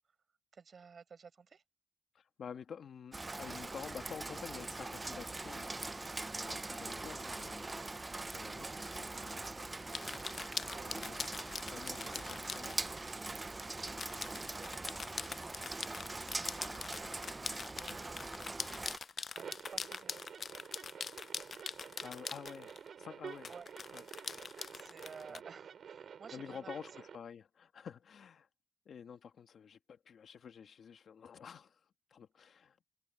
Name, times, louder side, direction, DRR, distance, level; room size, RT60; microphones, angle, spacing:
voice 1, 0.5-1.6 10.7-11.1 13.4-20.4 23.5-23.7 24.7-26.7, right 6 dB, 55° right, 5.8 m, -56 dB
voice 2, 2.1-8.0 8.3-11.3 11.7-12.8 14.2-14.3 17.9-18.0 22.0-23.5 23.9-24.0 25.3-25.4 26.3-28.5 28.8-32.8, left 7 dB, 90° left, 1.8 m, -50 dB
Rain, 3.1-19.0, right 2 dB, 20° right, 0.6 m, -42 dB
sound 1, 9.9-12.9 13.9-22.9 23.4-25.4, left 5 dB, 50° left, 0.4 m, -43 dB
sound 2, 19.4-27.2, right 7 dB, 85° right, 6.3 m, -50 dB
wide cardioid pair, 170°, 0 cm